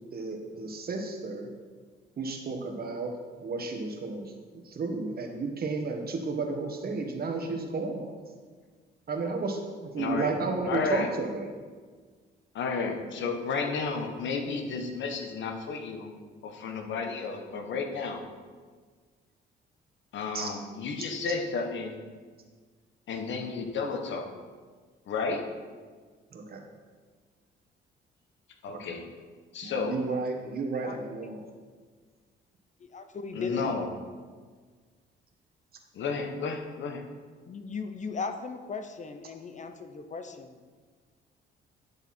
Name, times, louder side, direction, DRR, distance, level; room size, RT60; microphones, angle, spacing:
voice 1, 0.1-1.5 2.2-3.1 3.4-8.1 9.1-11.5 20.3-20.5 21.0-21.1 26.3-26.6 28.7-29.0 29.6-31.4, right 3 dB, 50° right, 3 dB, 1.5 m, -33 dB
voice 2, 10.0-10.3 10.7-11.1 12.5-16.1 16.4-18.2 20.1-22.0 23.1-24.3 25.1-25.5 28.6-29.1 29.5-30.0 33.3-33.9 35.9-37.1, left 4 dB, 70° left, 5 dB, 1.2 m, -32 dB
voice 3, 32.8-33.8 37.5-40.7, left 4 dB, 35° left, 8 dB, 0.7 m, -37 dB
10.5 x 6.8 x 4.3 m, 1.5 s
cardioid pair, 90°, 20 cm